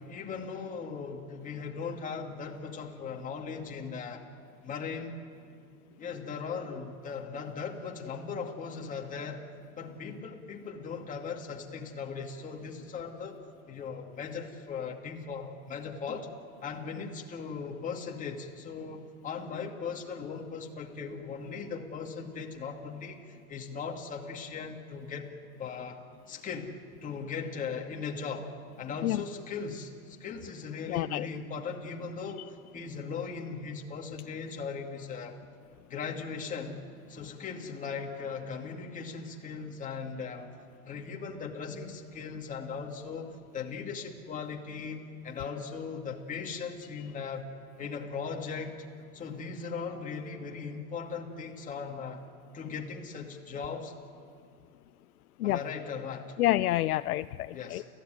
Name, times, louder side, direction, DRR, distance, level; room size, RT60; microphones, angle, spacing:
voice 1, 0.0-4.2 4.6-5.2 6.0-9.4 9.8-13.4 13.7-16.3 16.6-25.3 25.6-26.0 26.3-28.5 28.8-35.4 35.9-40.5 40.9-47.5 47.8-48.9 49.1-52.2 52.5-53.9 55.4-56.4 57.5-57.9, left 5 dB, 20° left, 1 dB, 2.4 m, -38 dB
voice 2, 30.9-31.3 55.4-55.6 56.4-57.8, left 15 dB, 90° left, 13 dB, 0.6 m, -28 dB
29.5 x 15.5 x 9.3 m, 2.3 s
supercardioid pair, 145°, 43 cm